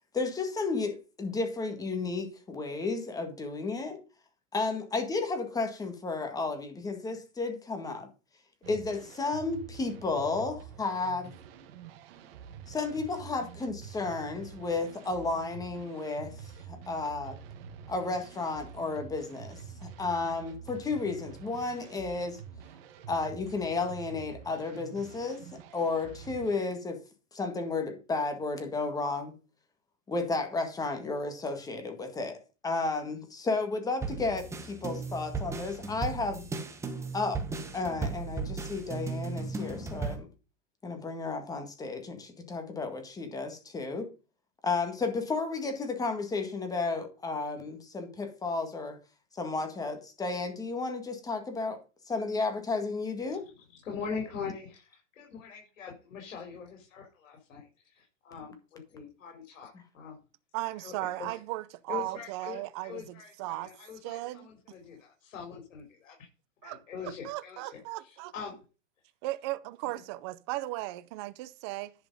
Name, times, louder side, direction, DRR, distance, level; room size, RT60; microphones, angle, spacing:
voice 1, 0.1-4.0 4.5-8.1 8.7-11.3 12.7-17.4 17.9-22.4 23.1-27.0 27.3-29.3 30.1-36.4 37.1-37.4 37.7-40.3 40.8-44.1 44.6-49.0 49.3-51.8 52.1-53.4, left 3 dB, 10° left, 1.8 m, -33 dB
sound 1, 8.6-26.6, right 7 dB, 50° right, 1.5 m, -47 dB
sound 2, 34.0-40.2, right 4 dB, 5° right, 1.0 m, -36 dB
voice 2, 53.3-60.2 60.8-61.4 61.9-66.2 66.6-68.6, left 6 dB, 85° left, 4.2 m, -42 dB
voice 3, 60.5-63.7 64.0-64.5 66.6-66.8 67.2-68.3 69.2-71.9, right 18 dB, 25° right, 0.4 m, -36 dB
11.0 x 5.1 x 5.4 m
supercardioid pair, 160°, 38 cm